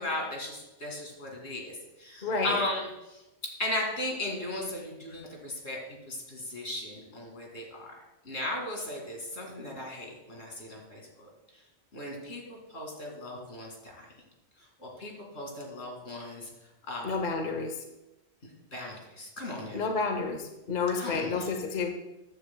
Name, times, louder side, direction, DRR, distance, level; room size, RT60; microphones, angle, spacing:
voice 1, 0.0-3.2 3.6-7.9 8.2-11.3 11.9-14.1 14.8-16.5 16.9-17.1 18.7-19.8 21.0-21.5, left 1 dB, 75° left, -1 dB, 2.6 m, -37 dB
voice 2, 2.2-2.6 17.0-17.8 19.7-21.9, left 4 dB, 45° left, 5 dB, 0.9 m, -30 dB
14.0 x 9.4 x 2.2 m, 0.99 s
omnidirectional pair, 1.1 m